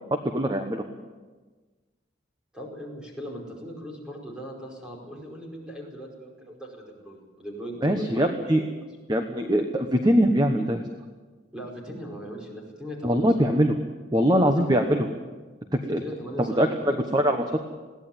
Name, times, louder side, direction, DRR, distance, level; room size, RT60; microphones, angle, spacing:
voice 1, 0.2-0.8 7.8-8.6 9.1-10.8 13.0-13.7 14.1-15.1 15.7-16.0 16.4-17.6, equal, 20° right, 5 dB, 1.1 m, -22 dB
voice 2, 2.5-8.6 11.5-13.6 14.3-14.9 16.0-17.0, equal, 5° right, -1 dB, 5.1 m, -38 dB
21.5 x 17.0 x 8.9 m, 1.3 s
head